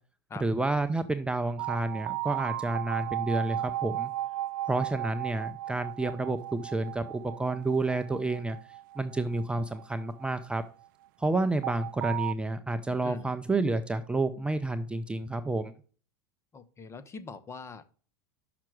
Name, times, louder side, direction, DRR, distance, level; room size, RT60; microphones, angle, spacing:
voice 1, 0.4-4.1 4.7-8.6 9.0-10.6 11.2-15.7, right 2 dB, 10° right, 8 dB, 0.6 m, -30 dB
sound 1, 1.6-10.6 11.6-12.3, right 14 dB, 65° right, 0.4 m, -36 dB
voice 2, 16.5-17.8, left 4 dB, 25° left, 14 dB, 0.8 m, -42 dB
5.9 x 5.9 x 4.6 m, 0.40 s
hypercardioid pair, 100°, 12 cm